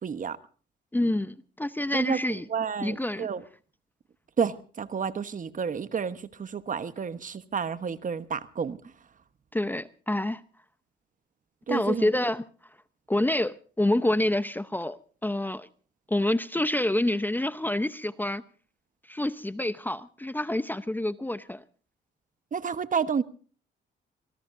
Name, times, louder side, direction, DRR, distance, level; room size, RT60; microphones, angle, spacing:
voice 1, 0.0-0.4 1.9-2.2 2.5-3.4 4.4-8.8 11.7-12.1 22.5-23.2, right 6 dB, 40° right, 1.2 m, -30 dB
voice 2, 0.9-2.5 2.8-3.3 9.5-10.4 11.7-12.4 13.1-15.7 16.1-18.4 19.1-21.6, left 1 dB, 10° left, 0.8 m, -27 dB
25.5 x 19.0 x 2.6 m
cardioid pair, 90°, 20 cm